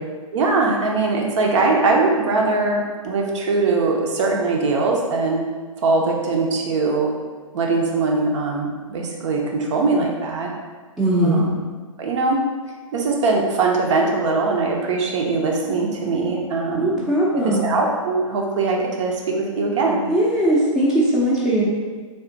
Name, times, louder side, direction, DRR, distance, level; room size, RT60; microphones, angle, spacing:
voice 1, 0.3-5.4 5.8-7.1 7.5-10.5 11.2-11.5 12.0-12.4 12.9-17.1 17.4-20.0, right 3 dB, 60° right, 0 dB, 0.8 m, -21 dB
voice 2, 11.0-11.4 16.7-17.7 20.1-21.7, right 1 dB, ahead, -9 dB, 0.6 m, -19 dB
3.6 x 2.4 x 3.9 m, 1.5 s
hypercardioid pair, 125°, 18 cm